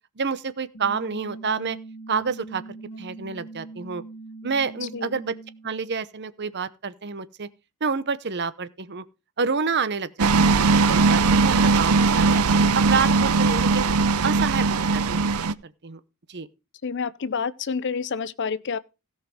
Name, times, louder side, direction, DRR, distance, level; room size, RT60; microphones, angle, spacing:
voice 1, 0.2-1.8 2.1-2.6 3.0-4.0 4.4-5.3 5.6-7.5 7.8-9.0 9.4-12.4 12.7-13.9 14.2-15.3 15.6-16.0 16.3-16.5, right 5 dB, 50° right, 0.9 m, -28 dB
sound 1, 0.7-5.7, right 3 dB, 70° left, 2.0 m, -41 dB
sound 2, 10.2-15.5, right 4 dB, 80° right, 0.7 m, -19 dB
voice 2, 16.8-18.8, left 5 dB, 55° left, 0.6 m, -28 dB
17.0 x 5.8 x 4.8 m
head